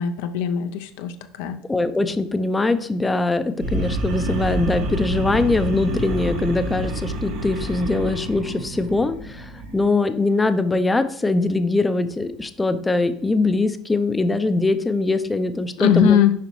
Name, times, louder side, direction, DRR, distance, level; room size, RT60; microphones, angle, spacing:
voice 1, 0.0-1.6 15.8-16.3, left 9 dB, 75° left, 8 dB, 0.5 m, -20 dB
voice 2, 1.7-16.2, left 2 dB, 15° left, 10 dB, 0.5 m, -22 dB
Monster Growl, 3.6-9.9, right 1 dB, 65° right, 1.2 m, -28 dB
6.8 x 5.0 x 3.1 m, 0.62 s
supercardioid pair, 90°, 0 cm